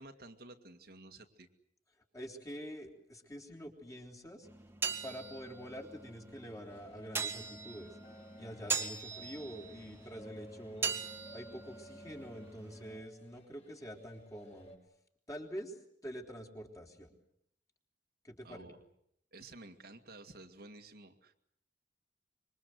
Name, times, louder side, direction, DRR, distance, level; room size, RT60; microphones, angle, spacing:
voice 1, 0.0-1.5 18.4-18.8 19.3-21.3, right 2 dB, 60° right, 5 dB, 2.2 m, -52 dB
voice 2, 2.1-4.5 5.0-8.0 8.4-10.9 11.3-14.7 15.3-15.8 16.0-17.1 18.2-18.7, equal, 20° left, 1 dB, 3.9 m, -46 dB
sound 1, 4.4-13.0, right 5 dB, 15° right, 2.0 m, -41 dB
sound 2, 6.7-14.8, left 1 dB, 35° left, 5.6 m, -57 dB
26.0 x 24.0 x 8.0 m, 0.73 s
head